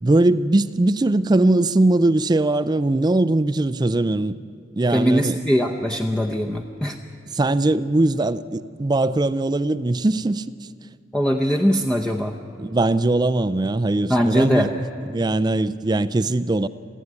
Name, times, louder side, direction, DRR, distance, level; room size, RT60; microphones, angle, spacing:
voice 1, 0.0-4.4 4.8-5.3 7.3-10.5 12.6-14.7 15.1-16.7, right 2 dB, 20° right, 0.4 m, -20 dB
voice 2, 4.9-7.0 11.1-12.3 14.1-14.7, equal, 5° left, 0.7 m, -21 dB
29.5 x 11.0 x 9.6 m
head